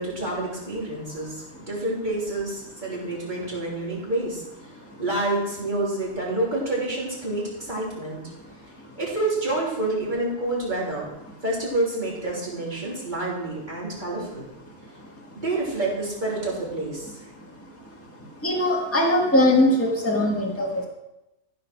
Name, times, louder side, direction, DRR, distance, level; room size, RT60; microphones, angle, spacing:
voice 1, 0.0-4.4 5.0-8.2 9.0-11.1 11.4-14.5 15.4-17.2, right 2 dB, 25° right, -5 dB, 3.5 m, -28 dB
voice 2, 18.2-20.8, left 1 dB, 10° left, -2 dB, 1.8 m, -21 dB
14.5 x 4.9 x 6.2 m, 0.93 s
omnidirectional pair, 1.9 m